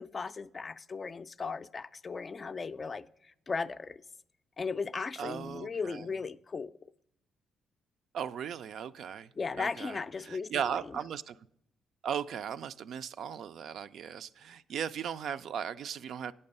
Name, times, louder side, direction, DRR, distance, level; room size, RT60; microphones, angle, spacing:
voice 1, 0.0-3.1 3.5-4.0 4.6-6.7 9.4-11.0, left 4 dB, 35° left, 0.3 m, -36 dB
voice 2, 5.2-6.1 8.1-9.3 9.6-10.0 10.3-11.4 12.0-16.3, right 8 dB, 70° right, 0.3 m, -37 dB
8.7 x 6.9 x 5.3 m
cardioid pair, 90°, 0 cm